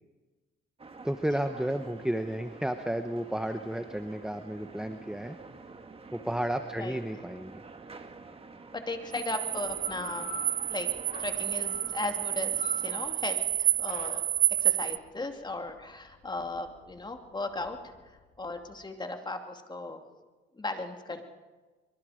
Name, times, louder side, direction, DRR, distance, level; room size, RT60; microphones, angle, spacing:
sound 1, 0.8-13.2, right 3 dB, 30° right, 2.0 m, -48 dB
voice 1, 1.0-5.4 6.1-7.5, right 1 dB, 5° right, 7 dB, 1.1 m, -32 dB
voice 2, 8.7-10.3 10.7-10.9 11.2-14.2 14.6-20.0 20.5-21.2, left 2 dB, 20° left, 5 dB, 2.6 m, -37 dB
sound 2, 9.1-15.0, right 12 dB, 65° right, 0.5 m, -30 dB
sound 3, 9.6-18.8, left 2 dB, 45° left, 3.2 m, -46 dB
24.5 x 23.0 x 5.1 m, 1.3 s
cardioid pair, 90°, 20 cm